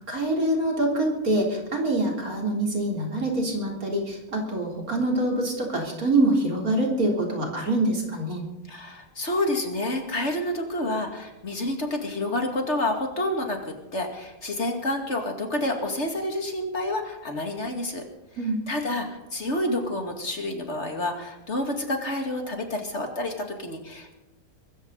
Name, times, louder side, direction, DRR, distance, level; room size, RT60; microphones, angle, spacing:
voice 1, 0.1-8.4 18.4-18.6, right 1 dB, 75° right, 0 dB, 4.2 m, -25 dB
voice 2, 8.7-18.0 18.7-24.1, left 1 dB, 50° left, 3 dB, 2.6 m, -29 dB
23.0 x 14.5 x 4.1 m, 0.97 s
omnidirectional pair, 1.5 m